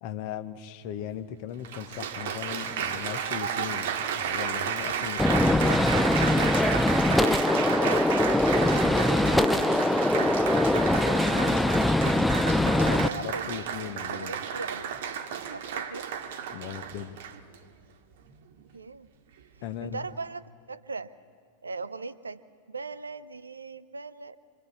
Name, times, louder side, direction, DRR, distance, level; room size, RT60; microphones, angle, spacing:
voice 1, 0.0-6.0 12.5-14.3 16.5-17.2 19.6-20.0, left 10 dB, 45° left, 10 dB, 1.0 m, -38 dB
Applause, 0.9-1.0 1.6-17.6 18.3-18.6, right 8 dB, 55° right, 1.1 m, -32 dB
Gunshot gunfire, 5.2-13.1, left 1 dB, 5° left, 0.4 m, -23 dB
voice 2, 7.1-10.5 10.9-12.1 12.6-13.7 14.1-14.9 15.5-16.1 18.7-19.1 19.8-21.1 21.6-22.4 22.7-24.4, right 4 dB, 75° right, 17 dB, 0.6 m, -39 dB
26.5 x 24.0 x 4.2 m, 2.1 s
figure-of-eight pair, 90°, 0 cm